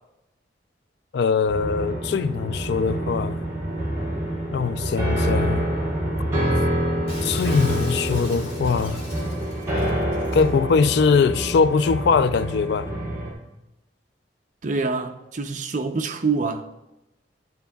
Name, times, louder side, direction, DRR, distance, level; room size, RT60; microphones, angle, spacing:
voice 1, 1.1-3.4 4.5-5.7 7.2-9.0 10.3-12.9, left 5 dB, 65° left, 0.3 m, -21 dB
sound 1, 1.5-13.3, right 1 dB, 15° right, 2.1 m, -26 dB
Shatter, 7.1-10.5, left 2 dB, 30° left, 1.9 m, -42 dB
voice 2, 14.6-16.7, right 4 dB, 45° right, 0.6 m, -26 dB
11.5 x 9.3 x 2.3 m
head